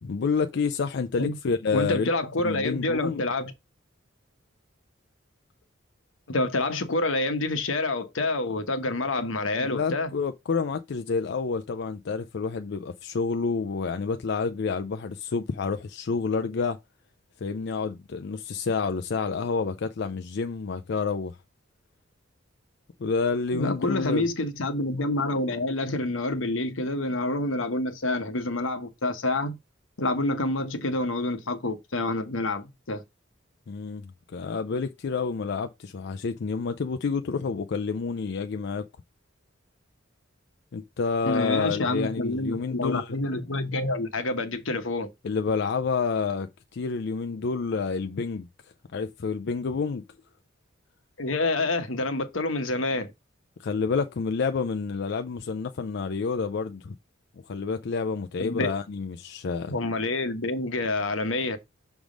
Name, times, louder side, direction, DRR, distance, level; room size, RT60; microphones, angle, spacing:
voice 1, 0.0-2.1 2.4-3.2 9.6-16.8 17.4-21.4 23.0-24.3 33.7-38.9 40.7-43.2 45.2-48.5 48.9-50.0 53.6-56.9 57.5-59.7, left 5 dB, 60° left, 0.4 m, -29 dB
voice 2, 1.7-3.5 6.3-10.1 23.5-29.6 30.0-33.0 41.2-45.1 51.2-53.1 58.4-58.7 59.7-61.6, left 2 dB, 85° left, 1.1 m, -27 dB
6.2 x 3.5 x 5.0 m
head